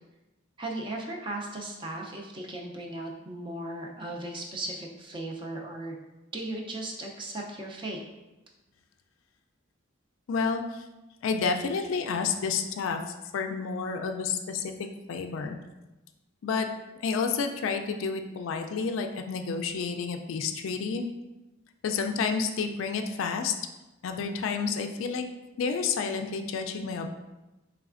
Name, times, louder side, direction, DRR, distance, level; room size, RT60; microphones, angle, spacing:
voice 1, 0.6-6.0 6.3-8.0, right 2 dB, 25° right, -1 dB, 0.4 m, -36 dB
voice 2, 10.3-10.8 11.2-14.7 15.1-15.6 16.4-16.7 17.0-21.1 21.8-23.5 24.0-25.2 25.6-27.1, left 5 dB, 70° left, 5 dB, 0.3 m, -30 dB
4.0 x 3.3 x 2.4 m, 1.0 s
head